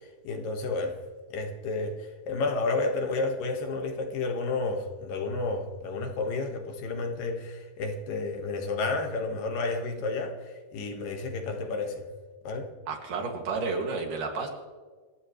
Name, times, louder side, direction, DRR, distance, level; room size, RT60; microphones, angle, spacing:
voice 1, 0.2-1.0 1.3-12.0 12.4-12.7, left 3 dB, 70° left, 4 dB, 3.2 m, -31 dB
voice 2, 12.9-14.5, right 4 dB, 60° right, 2 dB, 3.8 m, -31 dB
29.0 x 14.5 x 3.3 m, 1.5 s
omnidirectional pair, 4.2 m